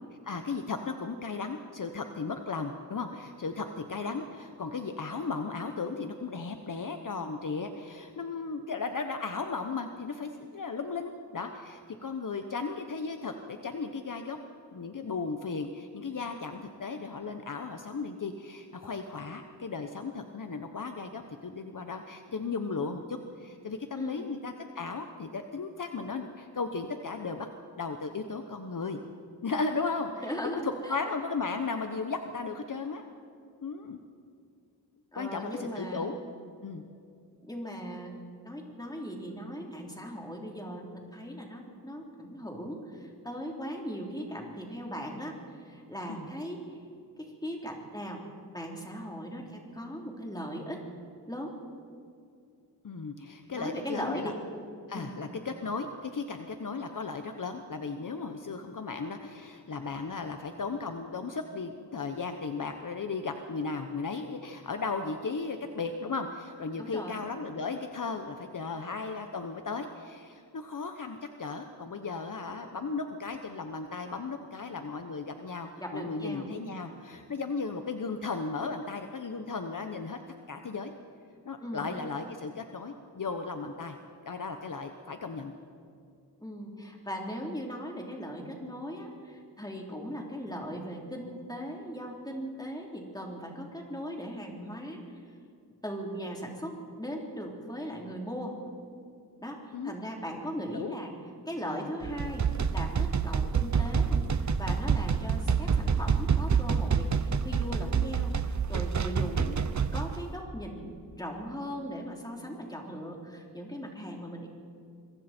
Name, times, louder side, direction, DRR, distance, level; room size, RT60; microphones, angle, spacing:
voice 1, 0.2-14.4 14.7-27.5 27.8-29.0 29.4-33.0 33.6-34.0 35.2-36.2 36.6-36.8 46.1-46.3 52.8-54.3 54.9-80.2 80.5-80.9 81.4-84.0 84.2-85.5 99.7-100.0 100.7-101.0 101.7-101.9 109.2-109.6, left 4 dB, 50° left, 6 dB, 1.1 m, -36 dB
voice 2, 24.0-24.3 30.2-30.9 35.1-36.1 37.5-38.2 38.4-45.3 45.6-46.8 47.2-48.2 48.5-50.8 51.3-51.5 53.5-54.4 54.9-55.1 66.8-67.2 75.8-76.5 81.6-82.0 86.4-95.2 95.8-98.6 99.4-101.1 101.5-109.5 109.9-110.9 111.2-114.5, equal, 10° left, 0 dB, 3.7 m, -38 dB
sound 1, 102.0-110.2, right 6 dB, 45° right, 0.8 m, -27 dB
26.0 x 23.5 x 4.5 m, 2.4 s
wide cardioid pair, 110°, 41 cm